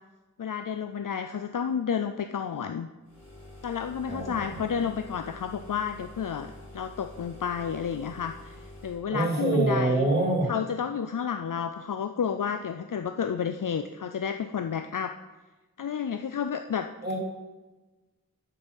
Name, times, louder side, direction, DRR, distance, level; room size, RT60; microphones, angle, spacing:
voice 1, 0.4-2.9 3.6-10.1 10.5-15.1 15.8-16.9, left 7 dB, 70° left, 8 dB, 0.5 m, -31 dB
sound 1, 3.0-9.1, left 1 dB, 50° left, 3.7 m, -47 dB
voice 2, 4.1-4.7 9.1-10.5 17.0-17.2, right 2 dB, 30° right, -2 dB, 3.2 m, -26 dB
6.9 x 6.7 x 7.1 m, 1.2 s
wide cardioid pair, 45°, 33 cm